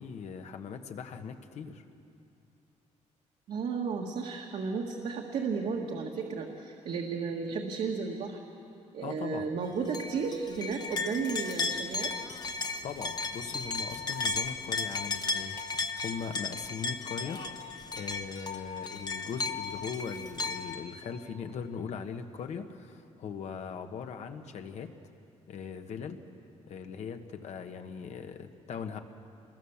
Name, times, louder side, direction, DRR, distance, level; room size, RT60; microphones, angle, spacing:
voice 1, 0.0-1.8 9.0-9.5 12.8-15.6 15.9-17.4 17.9-24.9 25.5-26.2 26.7-29.0, left 6 dB, 65° left, 6 dB, 1.4 m, -40 dB
voice 2, 3.5-8.4 8.9-12.1, right 5 dB, 65° right, 0 dB, 1.8 m, -33 dB
sound 1, 9.9-20.8, left 3 dB, 35° left, 1.2 m, -35 dB
27.5 x 21.5 x 7.3 m, 2.6 s
cardioid pair, 150°, 12 cm